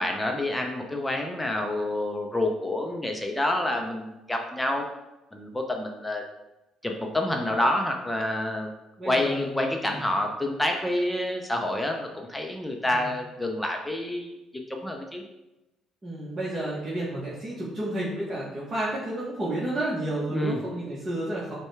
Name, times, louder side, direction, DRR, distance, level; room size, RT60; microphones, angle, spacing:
voice 1, 0.0-4.9 5.3-6.2 6.8-8.7 9.0-15.2 20.3-20.6, left 1 dB, 10° left, 2 dB, 0.6 m, -28 dB
voice 2, 9.0-9.5 9.8-10.0 12.9-13.1 16.0-21.5, right 1 dB, 30° right, -7 dB, 1.1 m, -31 dB
5.2 x 2.3 x 3.2 m, 0.96 s
supercardioid pair, 65°, 0 cm